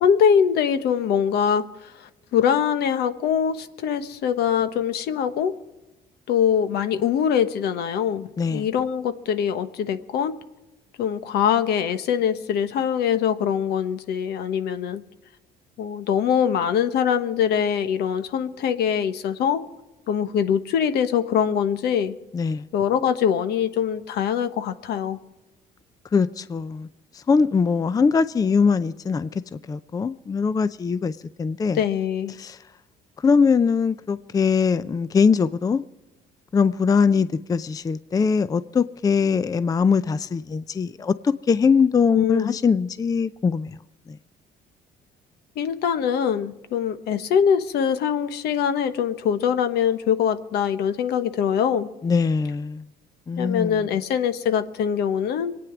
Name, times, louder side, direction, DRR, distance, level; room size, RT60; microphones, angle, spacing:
voice 1, 0.0-5.6 6.3-10.3 11.0-15.0 15.8-19.6 20.1-22.1 22.7-25.2 31.7-32.3 42.1-42.6 45.6-51.9 53.4-55.5, left 8 dB, 75° left, 1.2 m, -23 dB
voice 2, 22.3-22.7 26.1-26.9 27.1-31.1 31.4-31.8 32.4-32.6 33.2-35.8 36.5-43.8 44.1-44.2 52.0-52.8 53.3-53.9, left 5 dB, 20° left, 0.5 m, -22 dB
24.0 x 9.4 x 6.0 m
cardioid pair, 110°, 17 cm